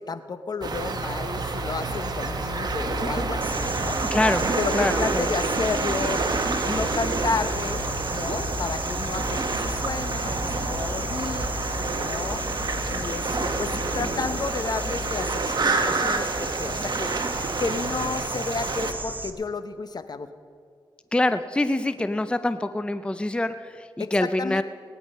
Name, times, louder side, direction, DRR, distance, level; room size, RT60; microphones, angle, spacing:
voice 1, 0.0-4.0 4.6-6.2 6.7-11.5 12.0-12.5 12.9-17.1 17.6-20.3 24.0-24.6, left 4 dB, 50° left, 11 dB, 0.9 m, -32 dB
sound 1, 0.6-18.9, right 3 dB, 50° right, 1.5 m, -28 dB
sound 2, 1.4-15.5, left 4 dB, 85° left, 3.9 m, -37 dB
sound 3, 3.4-19.3, right 2 dB, 20° right, 1.1 m, -35 dB
voice 2, 4.1-5.3 21.1-24.6, left 2 dB, 10° left, 11 dB, 0.5 m, -25 dB
19.5 x 10.0 x 5.5 m, 2.2 s
cardioid pair, 70°, 9 cm